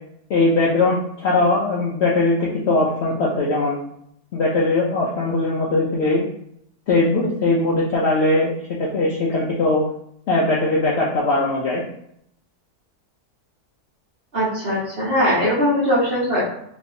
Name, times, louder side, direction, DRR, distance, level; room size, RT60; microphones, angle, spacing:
voice 1, 0.3-3.8 4.3-6.2 6.9-9.8 10.3-11.8, left 2 dB, 75° left, -4 dB, 0.6 m, -20 dB
voice 2, 14.3-16.5, equal, 45° right, -8 dB, 1.1 m, -20 dB
3.1 x 2.6 x 2.6 m, 0.72 s
omnidirectional pair, 1.7 m